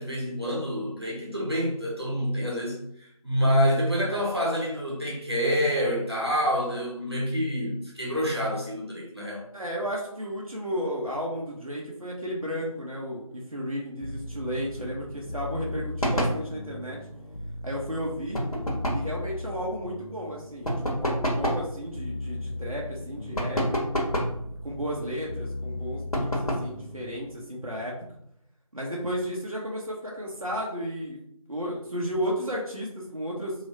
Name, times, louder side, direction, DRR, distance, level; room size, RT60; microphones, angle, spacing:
voice 1, 0.0-2.8 3.2-9.4, equal, 45° right, -5 dB, 1.2 m, -27 dB
voice 2, 9.5-17.0 17.6-18.4 18.9-23.8 24.6-27.9 28.7-31.2 31.5-33.5, equal, 70° right, -3 dB, 1.0 m, -33 dB
sound 1, 14.0-27.3, left 1 dB, 60° left, 0.5 m, -38 dB
sound 2, 16.0-16.4 18.3-19.1 20.7-21.7 23.4-24.4 26.1-26.8, equal, 75° left, 1.1 m, -27 dB
3.2 x 3.0 x 2.8 m, 0.73 s
figure-of-eight pair, 175°, 19 cm